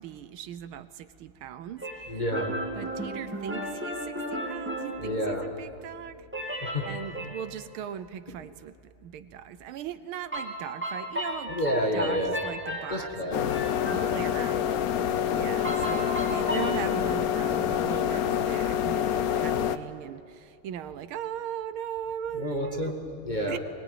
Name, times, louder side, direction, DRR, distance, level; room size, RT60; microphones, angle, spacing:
voice 1, 0.0-2.2 2.8-6.3 6.9-11.6 11.9-13.5 13.8-23.0 23.5-23.6, right 9 dB, 75° right, 13 dB, 1.6 m, -39 dB
sound 1, 1.8-5.6 6.3-7.5 10.3-14.4 15.6-16.8, equal, 5° right, 2.3 m, -35 dB
voice 2, 2.1-2.5 5.0-5.5 6.6-6.9 11.5-12.4 12.9-13.5 13.9-14.1 22.3-23.6, equal, 20° left, 2 dB, 1.8 m, -29 dB
sound 2, 13.3-19.8, left 9 dB, 65° left, 0.9 m, -27 dB
22.5 x 20.5 x 9.3 m, 2.4 s
omnidirectional pair, 2.4 m